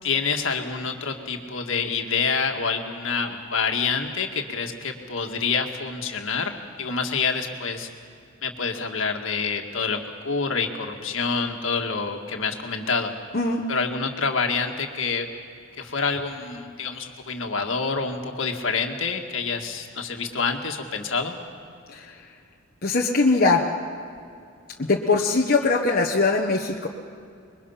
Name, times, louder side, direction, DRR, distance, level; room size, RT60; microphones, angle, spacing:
voice 1, 0.0-7.9 8.4-10.0 10.2-13.1 13.7-15.3 15.8-21.3, left 5 dB, 65° left, 3 dB, 1.9 m, -27 dB
voice 2, 22.8-23.6 24.9-26.9, left 3 dB, 45° left, -1 dB, 1.2 m, -21 dB
27.0 x 22.5 x 5.8 m, 2.4 s
head